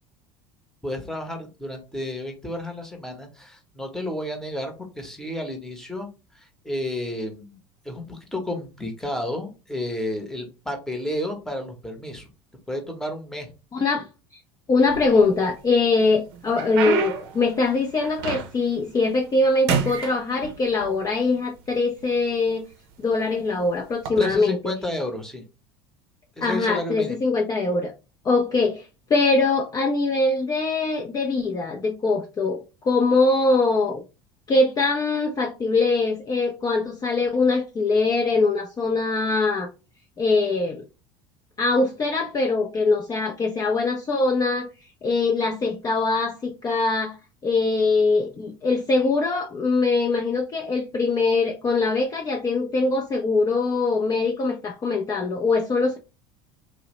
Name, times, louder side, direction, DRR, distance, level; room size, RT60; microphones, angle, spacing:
voice 1, 0.8-6.1 6.3-7.6 7.8-12.3 12.7-13.5 24.2-25.4 26.4-27.2, left 1 dB, 5° left, 0.8 m, -31 dB
voice 2, 13.7-14.0 14.7-22.6 23.0-24.6 26.4-27.9 28.2-34.0 34.5-39.7 40.2-40.8 41.6-44.7 45.0-47.2 47.4-56.0, left 3 dB, 25° left, 0.5 m, -22 dB
sound 1, 14.8-15.6 16.0-18.8 19.1-19.4 19.7-20.9 21.7-21.8 22.5-22.7 23.9-24.1, right 6 dB, 70° right, 0.5 m, -28 dB
2.7 x 2.0 x 2.9 m
hypercardioid pair, 75°, 13 cm